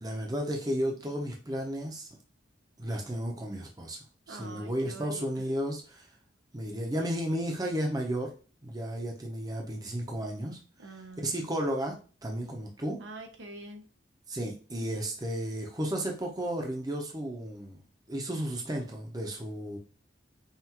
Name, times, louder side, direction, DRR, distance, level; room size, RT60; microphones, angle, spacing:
voice 1, 0.0-2.1 2.8-4.0 4.3-6.1 6.5-8.3 8.6-10.6 11.2-11.9 12.2-13.0 14.3-17.8 18.1-19.8, equal, 20° right, 1 dB, 0.8 m, -33 dB
voice 2, 4.3-5.5 10.8-11.6 13.0-13.8, right 2 dB, 80° right, 4 dB, 0.9 m, -46 dB
5.7 x 2.5 x 3.0 m, 0.36 s
head